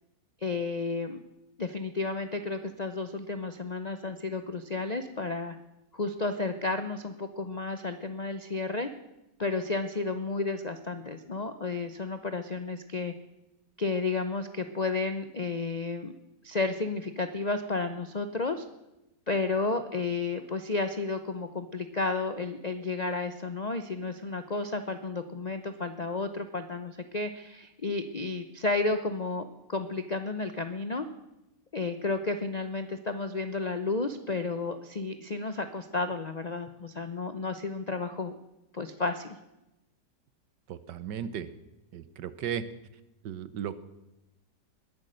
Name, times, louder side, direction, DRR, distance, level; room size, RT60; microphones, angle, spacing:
voice 1, 0.4-1.2 1.6-5.6 5.9-8.9 9.4-13.1 13.8-16.1 16.4-18.6 19.3-31.1 31.7-38.4 38.7-39.4, left 3 dB, 55° left, 9 dB, 0.4 m, -32 dB
voice 2, 40.7-41.5 41.9-42.6 43.2-43.8, right 9 dB, 75° right, 14 dB, 1.5 m, -35 dB
20.0 x 11.0 x 6.3 m, 0.94 s
omnidirectional pair, 1.9 m